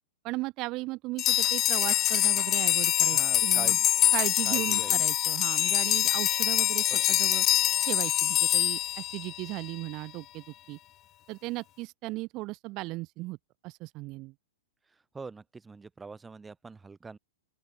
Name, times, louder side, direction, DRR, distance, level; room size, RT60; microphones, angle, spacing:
voice 1, 0.2-3.8 4.1-7.4 7.9-10.8 11.3-13.4 13.6-14.3, right 21 dB, 40° right, 1.8 m, -36 dB
sound 1, 1.2-9.7, left 13 dB, 30° left, 0.7 m, -25 dB
voice 2, 3.1-4.0 4.5-5.0 6.9-7.0 15.1-17.2, right 4 dB, 10° right, 2.3 m, -44 dB
sound 2, 4.4-9.2, left 16 dB, 60° left, 6.1 m, -62 dB
open air
hypercardioid pair, 130°, 0 cm